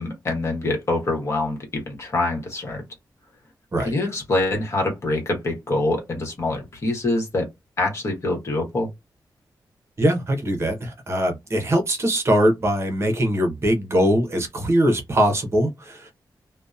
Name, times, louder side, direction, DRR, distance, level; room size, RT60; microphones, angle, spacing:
voice 1, 0.0-2.8 3.8-7.5 7.8-8.9, left 2 dB, 40° left, 1.0 m, -25 dB
voice 2, 10.0-16.1, equal, 35° right, 0.7 m, -21 dB
2.7 x 2.0 x 2.3 m
wide cardioid pair, 180°, 7 cm